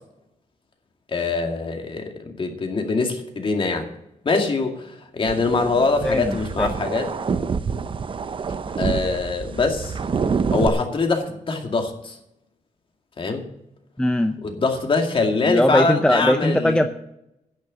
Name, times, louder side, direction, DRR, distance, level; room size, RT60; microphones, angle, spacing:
voice 1, 1.1-3.9 4.2-7.1 8.8-10.0 10.5-12.2 13.2-13.5 14.4-16.8, left 3 dB, 40° left, 3 dB, 2.2 m, -23 dB
sound 1, 5.3-10.7, right 5 dB, 40° right, 0.7 m, -27 dB
voice 2, 6.0-6.7 14.0-14.4 15.5-16.9, left 1 dB, 5° left, 7 dB, 0.6 m, -20 dB
10.5 x 6.7 x 8.7 m, 0.82 s
cardioid pair, 110°, 14 cm